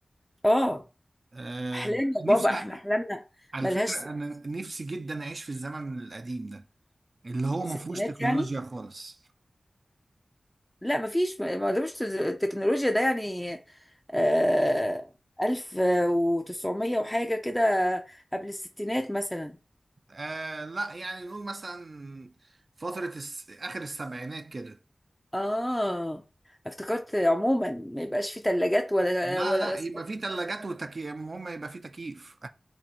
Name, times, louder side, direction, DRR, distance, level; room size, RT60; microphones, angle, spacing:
voice 1, 0.4-0.8 1.7-3.2 3.6-4.0 7.9-8.5 10.8-13.6 14.1-15.1 15.4-19.6 25.3-26.2 26.7-29.8, equal, 10° left, 0.4 m, -26 dB
voice 2, 1.3-2.6 3.5-6.7 7.2-9.2 20.1-22.5 22.8-24.8 29.3-32.5, right 2 dB, 55° right, 0.4 m, -35 dB
2.7 x 2.7 x 4.2 m
wide cardioid pair, 55°, 0 cm